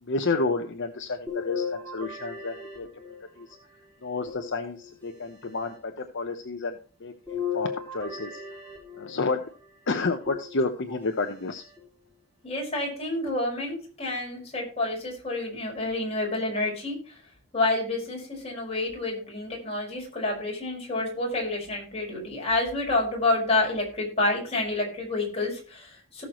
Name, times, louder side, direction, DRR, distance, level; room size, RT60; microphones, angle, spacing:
voice 1, 0.0-2.9 3.4-3.5 4.0-8.4 9.0-9.4 9.9-11.6, left 3 dB, 60° left, 5 dB, 1.0 m, -30 dB
sound 1, 1.3-3.5 4.3-5.3 7.3-9.3 10.3-11.1 11.8-11.9 13.3-13.4, left 5 dB, 10° left, 4.3 m, -36 dB
voice 2, 12.4-17.2 17.5-26.2, left 2 dB, 30° left, -2 dB, 5.2 m, -28 dB
18.0 x 6.5 x 3.1 m, 0.40 s
head